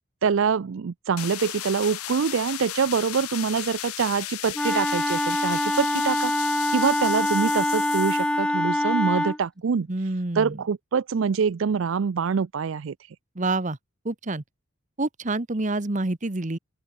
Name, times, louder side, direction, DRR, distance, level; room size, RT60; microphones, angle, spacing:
voice 1, 0.2-6.3 6.7-9.9 10.3-12.9, right 6 dB, 60° right, 0.4 m, -25 dB
sound 1, 1.2-8.4, left 16 dB, 90° left, 0.6 m, -35 dB
Wind instrument woodwind instrument, 4.5-9.4, left 1 dB, 5° left, 0.5 m, -24 dB
voice 2, 9.9-10.6 13.3-13.8 14.0-14.4 15.0-16.6, right 2 dB, 35° right, 1.1 m, -27 dB
open air
head